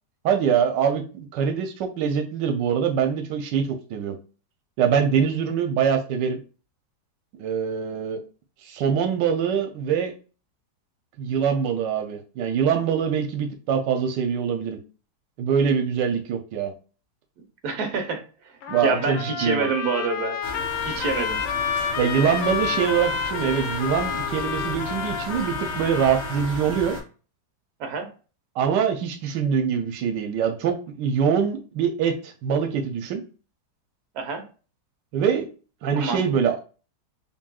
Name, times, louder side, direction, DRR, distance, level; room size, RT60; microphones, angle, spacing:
voice 1, 0.2-4.2 4.8-6.4 7.4-8.2 8.6-10.1 11.2-14.8 15.4-16.7 18.7-19.7 22.0-27.0 28.6-33.2 35.1-35.5 35.8-36.6, right 7 dB, 85° right, 1.3 m, -24 dB
voice 2, 17.6-18.2 18.8-20.4 20.8-21.4 27.8-28.1 34.1-34.4 35.9-36.2, right 4 dB, 65° right, 1.3 m, -26 dB
Trumpet, 18.6-26.5, left 7 dB, 80° left, 1.3 m, -30 dB
sound 1, 20.4-27.0, left 1 dB, 25° right, 2.3 m, -35 dB
5.4 x 2.7 x 2.3 m
omnidirectional pair, 1.9 m